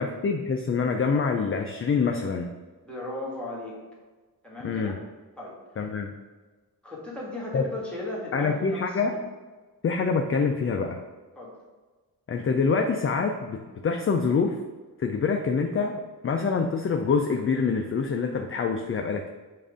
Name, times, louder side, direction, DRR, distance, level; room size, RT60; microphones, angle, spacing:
voice 1, 0.0-2.5 4.6-5.0 5.8-6.1 7.5-7.6 8.3-9.2 9.8-11.0 12.3-14.6 15.0-19.3, left 5 dB, 35° left, 4 dB, 0.4 m, -26 dB
voice 2, 2.8-3.8 4.4-5.0 5.4-5.6 6.8-9.3 11.3-11.6, left 2 dB, 5° left, -4 dB, 1.6 m, -36 dB
7.5 x 2.5 x 5.0 m, 1.3 s
wide cardioid pair, 130°, 36 cm